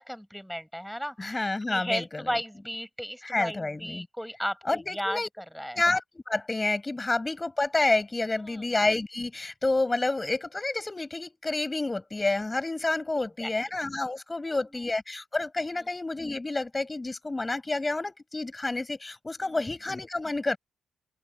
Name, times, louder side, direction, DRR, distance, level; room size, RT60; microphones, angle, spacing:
voice 1, 0.0-5.8 8.4-8.7 13.2-13.7 14.4-14.8 19.4-19.7, equal, ahead, 6.5 m, -36 dB
voice 2, 1.2-2.4 3.2-4.1 4.7-5.3 5.7-20.6, left 2 dB, 20° left, 6.0 m, -29 dB
open air
cardioid pair, 130°, 0 cm